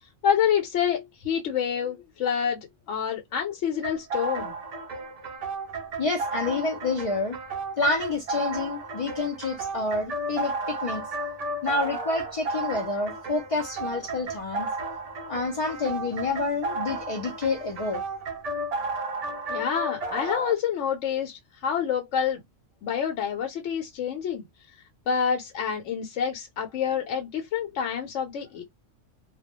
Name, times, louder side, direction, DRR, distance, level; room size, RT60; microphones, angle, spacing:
voice 1, 0.2-2.6 2.9-4.5 19.5-22.4 22.8-24.4 25.1-28.6, left 8 dB, 80° left, 0.9 m, -27 dB
sound 1, 3.8-20.5, right 3 dB, 55° right, 0.4 m, -33 dB
voice 2, 6.0-7.4 7.8-11.0 11.6-14.7 15.3-18.0, left 3 dB, 65° left, 0.3 m, -28 dB
2.2 x 2.1 x 2.9 m
omnidirectional pair, 1.2 m